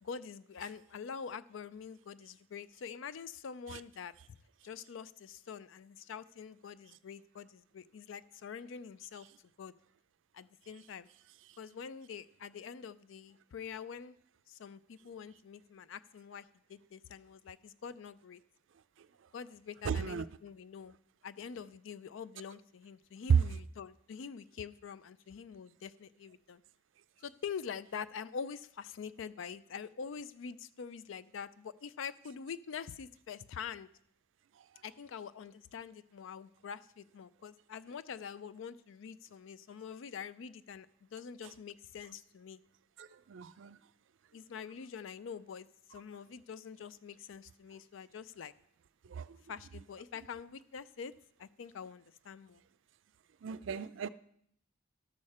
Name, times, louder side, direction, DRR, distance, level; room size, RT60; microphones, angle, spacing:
voice 1, 0.0-4.4 4.6-9.3 9.6-9.7 10.3-11.1 11.6-14.2 14.5-18.4 19.3-20.9 21.2-26.6 27.2-33.9 34.8-40.9 41.1-42.6 44.3-48.5 49.5-51.1 51.4-52.6, left 6 dB, 75° left, 16 dB, 0.4 m, -45 dB
voice 2, 19.9-20.2 43.0-43.8 49.1-49.3 53.4-54.1, right 6 dB, 75° right, 15 dB, 0.4 m, -38 dB
12.5 x 6.5 x 4.2 m, 0.67 s
head